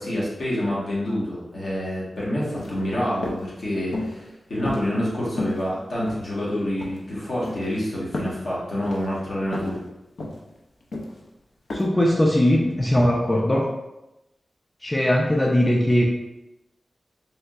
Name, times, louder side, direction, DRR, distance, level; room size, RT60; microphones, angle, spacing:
voice 1, 0.0-9.8, equal, 65° left, -7 dB, 1.2 m, -27 dB
sound 1, 2.5-2.8 3.2-3.4 3.9-4.2 4.6-5.1 5.4-5.6 6.1-6.5 6.8-7.0 7.4-7.7 8.1-8.4 8.8-9.0 9.5-9.8 10.2-10.4 10.9-11.2 11.7-11.8, left 2 dB, 85° left, 0.5 m, -31 dB
voice 2, 11.7-13.7 14.8-16.0, left 1 dB, 20° left, -1 dB, 0.3 m, -20 dB
3.4 x 2.9 x 2.4 m, 0.94 s
wide cardioid pair, 130°, 0 cm